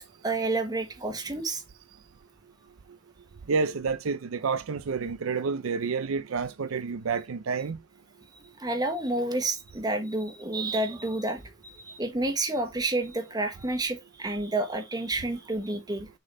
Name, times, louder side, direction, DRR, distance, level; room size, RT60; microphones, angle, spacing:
voice 1, 0.2-1.6 8.6-16.1, right 2 dB, 20° right, 1.2 m, -29 dB
voice 2, 3.5-7.8, right 5 dB, 75° right, 0.5 m, -29 dB
6.6 x 3.9 x 4.1 m
head